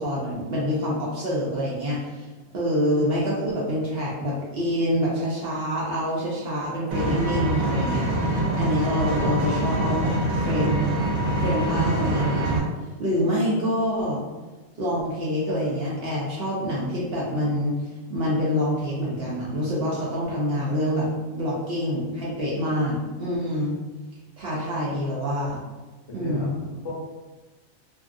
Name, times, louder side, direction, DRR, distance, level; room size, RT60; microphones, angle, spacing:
voice 1, 0.0-2.3 2.5-10.1 10.4-10.9 11.4-12.6 13.0-14.2 14.8-17.7 18.1-23.8 24.4-25.6 26.1-26.6, equal, 60° right, -6 dB, 0.7 m, -26 dB
Vehicle, 6.9-12.6, right 1 dB, 85° right, 1.1 m, -24 dB
voice 2, 26.1-26.9, left 1 dB, 65° left, -4 dB, 0.9 m, -36 dB
2.6 x 2.4 x 2.5 m, 1.2 s
omnidirectional pair, 1.4 m